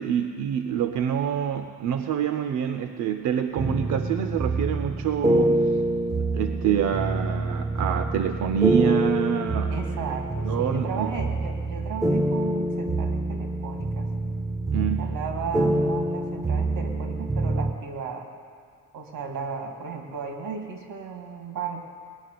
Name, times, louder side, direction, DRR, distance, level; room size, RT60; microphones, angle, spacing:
voice 1, 0.0-5.6 6.3-9.7 10.4-11.1 14.7-15.0, right 9 dB, 60° right, 8 dB, 0.6 m, -26 dB
sound 1, 3.6-17.7, right 2 dB, 10° right, 0.4 m, -26 dB
voice 2, 9.7-14.1 14.7-18.3 18.9-21.9, right 5 dB, 85° right, 3 dB, 2.3 m, -35 dB
19.0 x 6.6 x 9.4 m, 2.1 s
cardioid pair, 165°, 33 cm